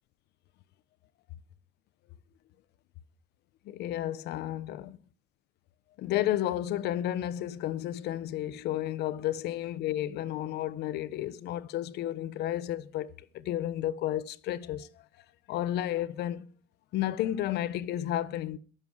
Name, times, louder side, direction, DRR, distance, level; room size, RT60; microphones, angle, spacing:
voice 1, 3.6-5.0 6.0-15.1 15.5-16.5 16.9-18.6, left 12 dB, 80° left, 0.9 m, -32 dB
22.5 x 7.7 x 4.7 m
cardioid pair, 110°, 17 cm